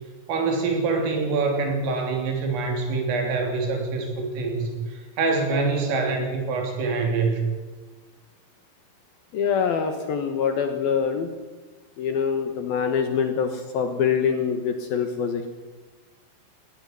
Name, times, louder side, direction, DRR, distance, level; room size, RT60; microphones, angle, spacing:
voice 1, 0.3-7.4, right 4 dB, 80° right, 3 dB, 5.9 m, -25 dB
voice 2, 9.3-11.3 12.0-15.5, left 7 dB, 65° left, 6 dB, 2.6 m, -24 dB
19.5 x 16.0 x 9.6 m, 1.3 s
omnidirectional pair, 5.7 m